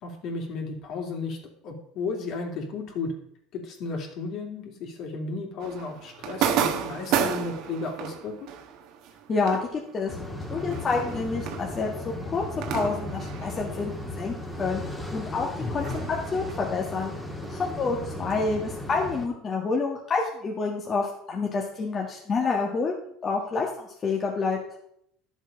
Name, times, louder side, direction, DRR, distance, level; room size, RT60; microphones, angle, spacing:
voice 1, 0.0-1.4 1.6-3.1 3.5-8.3 15.6-16.1, left 4 dB, 55° left, 2 dB, 2.8 m, -34 dB
sound 1, 5.6-14.6 14.8-18.4, right 8 dB, 60° right, 1.4 m, -33 dB
voice 2, 9.3-10.1 10.5-12.4 12.7-16.0 16.3-17.1 17.5-22.9 23.2-24.6, left 4 dB, 30° left, -1 dB, 1.6 m, -28 dB
sound 2, 10.1-19.3, left 1 dB, 5° left, 1.9 m, -36 dB
12.0 x 7.2 x 5.3 m, 0.70 s
supercardioid pair, 120°, 0 cm